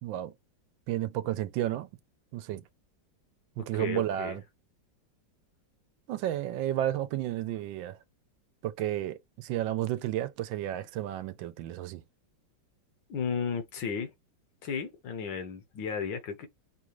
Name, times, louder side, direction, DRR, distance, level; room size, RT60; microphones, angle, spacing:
voice 1, 0.0-0.3 0.9-1.9 2.3-2.6 3.6-4.4 6.1-8.0 8.6-12.0, right 13 dB, 85° right, 1.4 m, -32 dB
voice 2, 3.7-4.4 13.1-14.1 14.6-16.5, left 6 dB, 75° left, 1.7 m, -34 dB
5.3 x 2.4 x 3.0 m
omnidirectional pair, 2.0 m